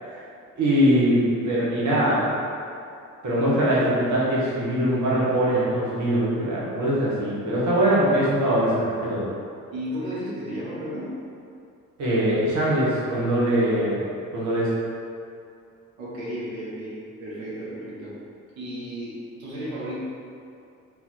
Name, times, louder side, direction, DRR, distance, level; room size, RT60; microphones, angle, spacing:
voice 1, 0.6-2.2 3.2-9.2 12.0-14.0 14.3-14.7, right 1 dB, 45° right, -7 dB, 1.4 m, -22 dB
voice 2, 9.7-11.2 16.0-18.2 18.6-20.0, equal, 75° right, -8 dB, 1.1 m, -33 dB
4.0 x 2.8 x 4.3 m, 2.5 s
figure-of-eight pair, 45°, 41 cm